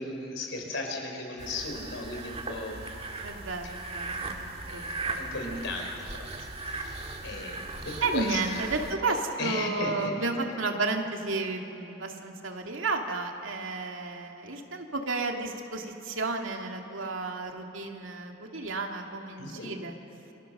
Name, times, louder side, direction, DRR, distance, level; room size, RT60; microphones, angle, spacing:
voice 1, 0.0-2.8 3.6-3.7 4.7-6.3 6.6-8.6 9.4-10.1 19.4-19.7, left 2 dB, 65° left, 2 dB, 4.7 m, -36 dB
sound 1, 1.4-8.9, right 3 dB, 30° right, 2.1 m, -38 dB
voice 2, 3.2-4.4 4.7-5.2 8.0-19.9, right 3 dB, 85° right, 2 dB, 2.3 m, -32 dB
28.5 x 24.0 x 6.7 m, 3.0 s
head